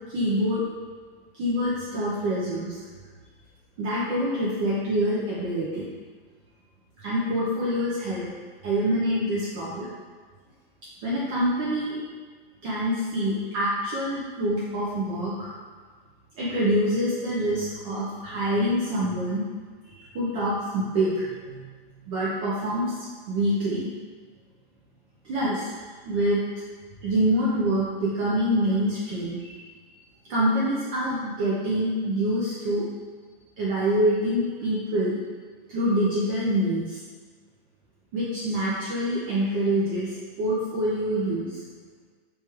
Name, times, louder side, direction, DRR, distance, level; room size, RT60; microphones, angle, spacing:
voice 1, 0.1-0.6 1.3-2.8 3.8-5.9 7.0-8.3 8.6-9.9 11.0-12.0 12.6-15.5 16.4-19.5 19.8-21.1 21.4-21.6 22.1-23.9 25.2-25.7 26.0-26.4 27.0-29.6 30.3-32.8 33.6-35.1 35.7-37.0 38.1-41.6, equal, 35° right, -8 dB, 0.7 m, -26 dB
3.3 x 3.3 x 3.0 m, 1.5 s
hypercardioid pair, 140°, 29 cm